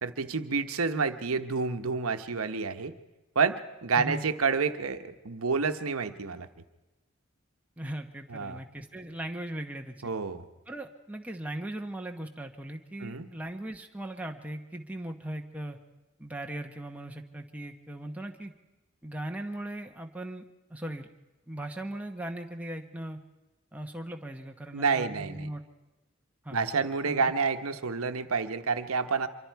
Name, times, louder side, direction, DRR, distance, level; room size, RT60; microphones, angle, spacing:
voice 1, 0.0-2.9 3.3-6.5 8.3-8.6 10.0-10.4 13.0-13.3 24.7-25.5 26.5-29.3, right 5 dB, 85° right, 9 dB, 1.0 m, -29 dB
voice 2, 3.9-4.3 7.8-10.1 10.7-15.8 16.2-18.5 19.0-20.4 20.7-21.1 21.5-23.2 23.7-25.6 26.4-26.7 27.0-27.3, right 1 dB, 5° right, 3 dB, 1.0 m, -38 dB
25.0 x 23.5 x 4.6 m, 1.1 s
head